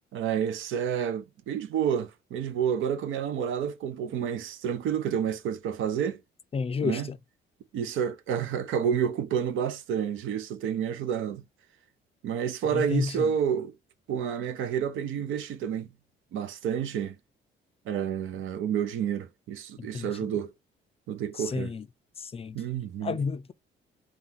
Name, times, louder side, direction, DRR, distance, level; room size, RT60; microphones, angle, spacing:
voice 1, 0.1-6.2 6.8-7.1 7.7-11.4 12.2-13.7 14.1-15.9 16.3-17.2 17.9-20.5 21.1-21.7 22.5-23.2, right 8 dB, 85° right, 0.6 m, -29 dB
voice 2, 6.5-7.2 12.7-13.3 19.8-20.1 21.5-21.8 22.2-22.6 23.0-23.5, left 5 dB, 30° left, 0.4 m, -31 dB
3.6 x 2.3 x 2.8 m
cardioid pair, 90°, 20 cm